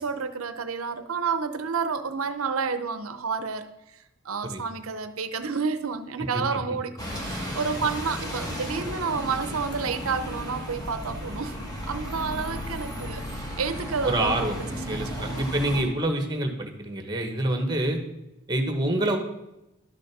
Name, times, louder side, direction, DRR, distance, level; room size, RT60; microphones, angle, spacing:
voice 1, 0.0-3.7 4.2-11.5 11.8-15.5, right 5 dB, 85° right, 11 dB, 0.7 m, -30 dB
Bus, 7.0-15.8, equal, 15° left, 1.7 m, -34 dB
voice 2, 14.0-14.6 14.9-18.0 18.5-19.2, right 1 dB, 20° right, 5 dB, 1.3 m, -26 dB
11.5 x 6.4 x 6.0 m, 0.94 s
head